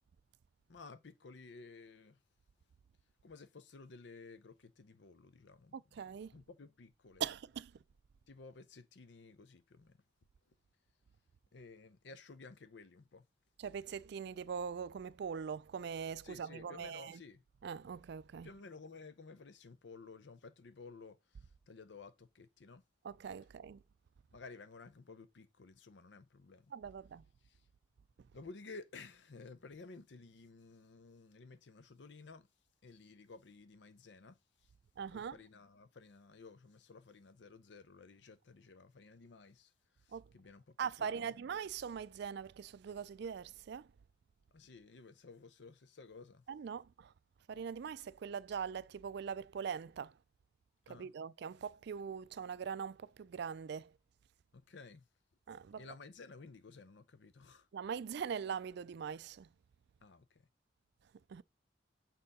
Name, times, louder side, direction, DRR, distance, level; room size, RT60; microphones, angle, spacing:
voice 1, 0.7-2.2 3.2-5.8 6.3-7.2 8.3-10.0 11.5-13.3 16.2-17.4 18.4-21.4 21.7-22.8 24.3-26.7 27.4-27.6 28.3-32.5 32.8-34.7 35.1-39.7 40.0-41.5 44.5-46.5 50.9-51.1 54.5-55.1 55.8-57.7 60.0-60.4, left 4 dB, 65° left, 0.6 m, -54 dB
voice 2, 5.7-6.3 7.2-7.7 13.6-17.2 17.6-18.5 23.0-23.8 26.7-27.2 35.0-35.4 40.1-40.2 40.8-43.9 46.5-47.1 47.5-50.1 50.9-53.9 55.5-55.9 57.7-59.5 61.3-61.4, right 7 dB, 65° right, 0.3 m, -42 dB
6.6 x 3.8 x 5.3 m
head